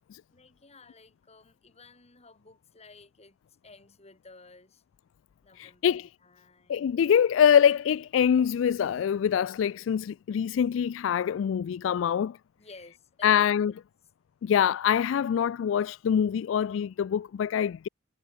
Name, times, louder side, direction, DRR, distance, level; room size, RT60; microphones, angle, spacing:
voice 1, 0.3-4.8 5.4-6.9 12.6-13.8, left 3 dB, 35° left, 4.3 m, -54 dB
voice 2, 5.6-6.0 6.7-12.4 13.2-13.7 14.4-17.9, left 8 dB, 70° left, 0.3 m, -24 dB
head